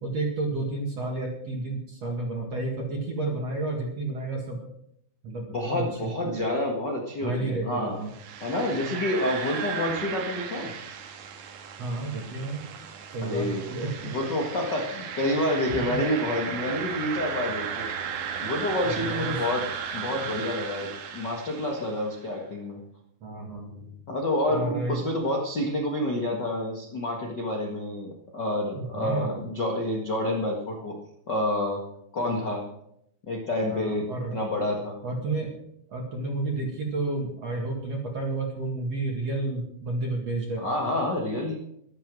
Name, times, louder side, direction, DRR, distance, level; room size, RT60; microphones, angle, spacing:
voice 1, 0.0-4.6 5.2-6.5 7.2-8.1 11.8-12.7 13.1-14.1 18.8-19.4 23.2-23.9 24.5-25.0 28.8-29.4 33.7-34.4 35.0-35.5 35.9-40.6, right 2 dB, 45° right, 0 dB, 2.4 m, -31 dB
voice 2, 5.5-8.0 8.4-10.7 13.2-13.7 14.0-17.9 18.4-19.6 19.9-22.8 24.1-31.0 31.3-31.8 32.1-32.6 33.3-34.0 34.3-35.0 40.6-41.5, left 1 dB, 70° left, 0 dB, 1.0 m, -28 dB
sound 1, 8.1-22.0, right 7 dB, 85° right, 3.9 m, -35 dB
13.0 x 12.0 x 6.2 m, 0.73 s
omnidirectional pair, 5.1 m